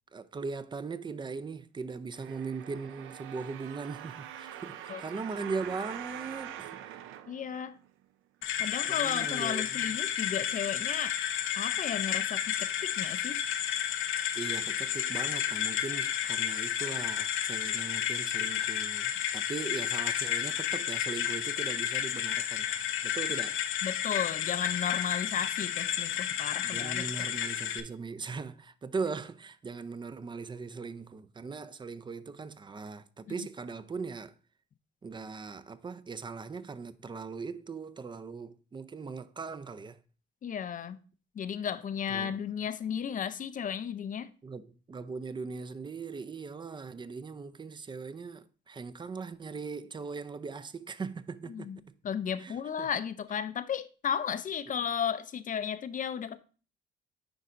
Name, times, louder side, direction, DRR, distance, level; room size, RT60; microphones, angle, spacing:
voice 1, 0.1-7.0 8.9-9.9 14.4-23.6 26.6-34.3 35.0-40.0 42.1-42.4 44.4-51.7 52.4-52.9, right 4 dB, 25° right, 0.4 m, -39 dB
sound 1, 2.1-8.0 8.6-8.7, right 11 dB, 85° right, 0.5 m, -44 dB
voice 2, 7.3-7.8 8.6-11.2 11.6-13.4 23.8-27.1 33.4-33.5 40.4-41.0 41.4-44.3 51.5-56.4, left 8 dB, 40° left, 0.4 m, -34 dB
sound 2, 8.4-27.8, left 10 dB, 85° left, 0.6 m, -32 dB
9.8 x 4.0 x 2.5 m
cardioid pair, 90°, 20 cm